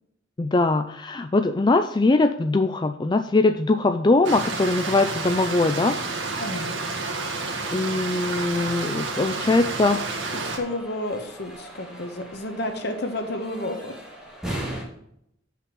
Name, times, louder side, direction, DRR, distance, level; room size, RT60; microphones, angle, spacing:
voice 1, 0.4-6.0 7.7-10.0, left 2 dB, 25° left, 7 dB, 0.4 m, -21 dB
Stream, 4.2-10.6, right 3 dB, 80° right, 1.7 m, -30 dB
voice 2, 6.4-6.8 10.3-14.0, left 1 dB, 60° left, 5 dB, 1.4 m, -31 dB
sound 1, 8.5-14.8, right 1 dB, 5° right, 3.0 m, -39 dB
7.2 x 5.8 x 6.1 m, 0.75 s
head